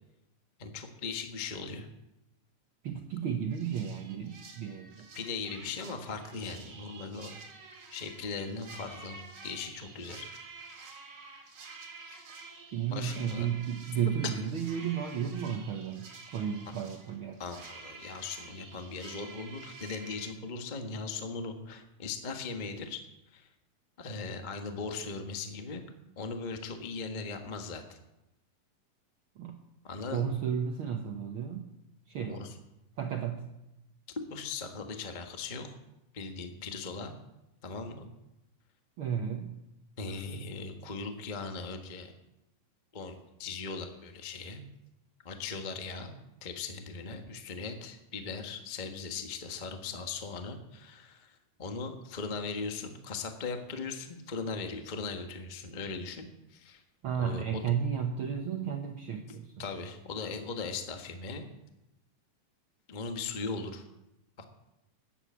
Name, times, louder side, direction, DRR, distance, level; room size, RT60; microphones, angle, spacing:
voice 1, 0.6-1.9 5.1-7.3 7.9-10.3 12.0-12.3 12.9-13.5 14.2-14.3 17.4-23.0 23.3-23.5 24.0-25.8 26.1-28.0 29.8-30.2 32.2-32.5 34.3-35.7 36.1-37.1 37.6-38.1 40.0-42.1 42.9-44.6 45.2-46.1 46.4-56.8 57.2-57.6 59.6-61.4 62.9-63.8 64.4-64.5, left 4 dB, 85° left, 5 dB, 0.4 m, -39 dB
voice 2, 2.8-5.1 12.7-17.4 29.4-29.6 30.1-31.7 32.1-32.4 33.0-33.4 39.0-39.5 40.1-40.2 57.0-59.6, right 8 dB, 65° right, 3 dB, 1.3 m, -33 dB
sound 1, 3.5-20.3, right 4 dB, 40° right, 2.8 m, -49 dB
14.0 x 9.7 x 8.4 m, 0.92 s
omnidirectional pair, 3.7 m